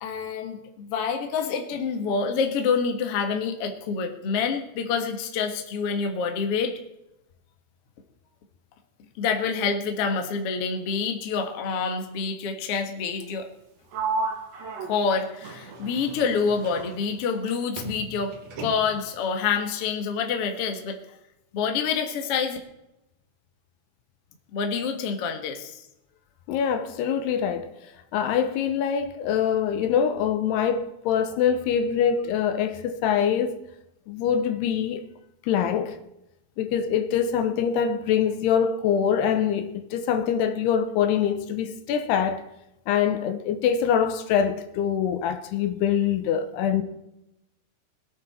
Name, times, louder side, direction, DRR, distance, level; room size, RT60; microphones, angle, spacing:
voice 1, 0.0-6.7 9.2-13.5 14.8-18.3 18.6-21.0 21.5-22.6 24.5-25.8, left 5 dB, 55° left, 1.7 m, -27 dB
Sliding door, 13.9-17.5 17.8-19.1, right 4 dB, 60° right, 1.8 m, -34 dB
voice 2, 26.5-27.7 28.1-33.5 34.1-35.0 35.4-36.0 36.6-42.5 42.9-46.8, left 8 dB, 75° left, 2.9 m, -24 dB
21.5 x 9.1 x 4.3 m
omnidirectional pair, 4.8 m